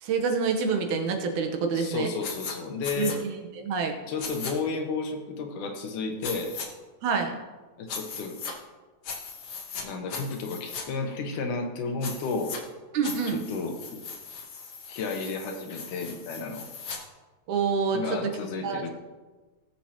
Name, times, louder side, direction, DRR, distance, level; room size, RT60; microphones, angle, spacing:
voice 1, 0.0-2.1 3.0-3.9 7.0-7.3 12.9-13.4 17.5-18.3 18.6-18.9, right 5 dB, 80° right, 3 dB, 2.5 m, -27 dB
voice 2, 1.7-3.2 4.1-6.5 7.8-8.4 9.8-12.6 13.3-14.0 14.9-16.7 17.9-18.9, left 4 dB, 85° left, 4 dB, 2.6 m, -32 dB
sound 1, 2.2-2.5 2.8-3.2 4.2-4.5 6.2-6.7 7.9-8.5 9.0-9.8 10.1-10.8 12.0-12.6 13.0-17.0, left 5 dB, 55° left, 1.3 m, -38 dB
18.5 x 7.1 x 2.9 m, 1.3 s
omnidirectional pair, 3.5 m